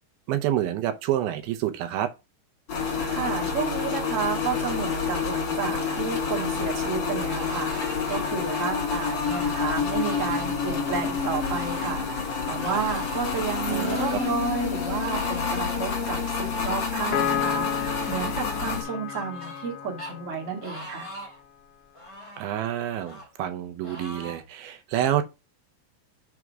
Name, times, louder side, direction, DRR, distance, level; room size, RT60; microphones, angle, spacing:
voice 1, 0.3-2.1 13.7-14.2 22.4-25.2, right 11 dB, 80° right, 2.5 m, -28 dB
sound 1, 2.7-18.8, left 5 dB, 45° left, 2.8 m, -28 dB
voice 2, 2.9-21.1, right 6 dB, 60° right, 0.8 m, -31 dB
sound 2, 7.4-8.2 8.5-9.5 9.9-10.5 11.4-12.0 12.6-13.2 13.9-14.4 15.0-15.6 16.3-17.2 17.8-18.2 18.8-19.7 20.0-20.1 20.6-21.4 21.9-22.5 23.0-23.3 23.8-24.4, left 1 dB, 15° left, 1.3 m, -41 dB
Piano, 17.1-20.7, left 9 dB, 80° left, 2.5 m, -31 dB
6.2 x 3.5 x 6.0 m
omnidirectional pair, 4.5 m